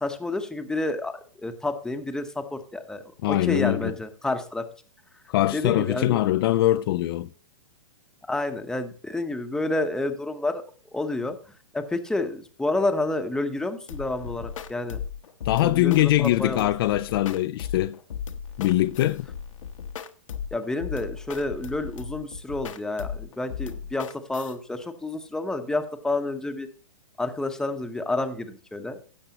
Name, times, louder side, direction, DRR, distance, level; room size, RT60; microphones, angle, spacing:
voice 1, 0.0-4.6 5.5-6.3 8.3-10.6 10.9-11.4 11.7-15.0 15.6-16.7 20.5-26.7 27.2-29.0, left 2 dB, 5° left, 0.9 m, -29 dB
voice 2, 3.2-3.9 5.3-7.3 15.5-18.0 18.6-19.3, left 15 dB, 45° left, 0.4 m, -22 dB
sound 1, 13.9-24.5, left 7 dB, 70° left, 1.1 m, -37 dB
16.5 x 6.7 x 2.9 m
hypercardioid pair, 125°, 17 cm